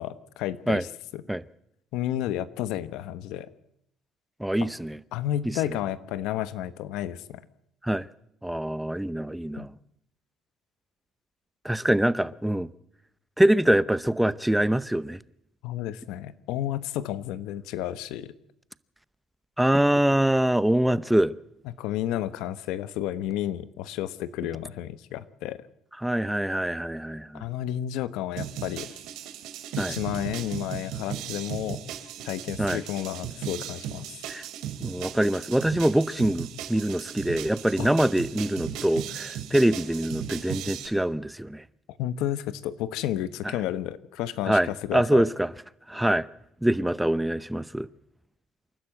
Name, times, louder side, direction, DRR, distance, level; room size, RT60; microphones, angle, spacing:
voice 1, 0.0-1.2 1.9-3.5 5.1-7.4 9.6-9.7 15.6-18.3 21.6-25.6 27.3-28.9 29.8-31.8 32.2-34.0 37.8-37.9 42.0-45.2, left 12 dB, 80° left, 1.1 m, -31 dB
voice 2, 4.4-5.0 7.8-8.1 8.4-9.7 11.6-12.7 13.4-15.2 19.6-21.3 26.0-27.4 29.8-29.9 32.6-32.8 34.3-34.4 34.8-41.6 44.5-45.5 45.9-46.3 46.6-47.9, right 1 dB, 5° right, 0.7 m, -24 dB
sound 1, 28.4-40.9, right 9 dB, 80° right, 2.5 m, -37 dB
27.5 x 12.0 x 7.9 m
cardioid pair, 105°, 0 cm